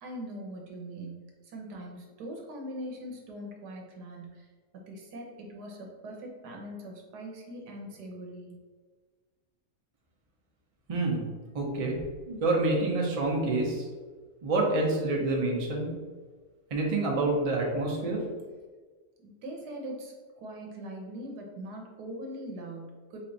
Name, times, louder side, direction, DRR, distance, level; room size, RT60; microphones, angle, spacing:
voice 1, 0.0-4.5 4.7-8.6 19.2-23.2, right 1 dB, 85° right, 0 dB, 1.5 m, -41 dB
voice 2, 10.9-11.2 11.5-11.9 12.3-13.8 14.4-15.9 16.7-18.2, right 2 dB, 30° right, -1 dB, 0.6 m, -27 dB
4.3 x 3.1 x 3.9 m, 1.4 s
omnidirectional pair, 1.7 m